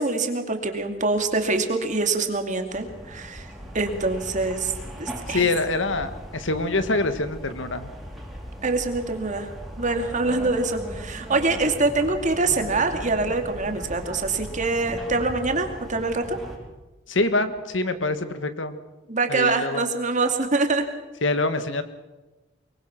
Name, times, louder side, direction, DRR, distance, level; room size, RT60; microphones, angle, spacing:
voice 1, 0.0-3.5 3.7-4.7 5.0-5.5 8.6-9.5 9.8-16.4 19.1-20.9, right 3 dB, 40° right, 5 dB, 2.6 m, -24 dB
sound 1, 2.7-16.6, equal, ahead, 4.4 m, -38 dB
voice 2, 5.3-7.9 17.1-18.8 19.3-19.9 21.2-21.8, left 2 dB, 75° left, 10 dB, 1.8 m, -25 dB
23.5 x 23.0 x 6.1 m, 1.1 s
head